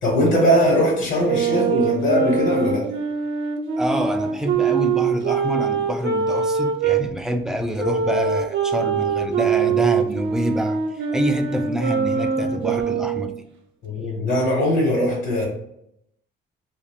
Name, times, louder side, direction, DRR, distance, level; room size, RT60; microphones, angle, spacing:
voice 1, 0.0-2.9 13.8-15.5, equal, 70° left, -1 dB, 1.2 m, -20 dB
sound 1, 1.2-7.0 7.8-13.4, right 6 dB, 75° right, 0.6 m, -23 dB
voice 2, 3.8-10.8 11.1-13.3, equal, 5° right, 5 dB, 0.4 m, -26 dB
2.5 x 2.3 x 3.4 m, 0.76 s
cardioid pair, 90°, 20 cm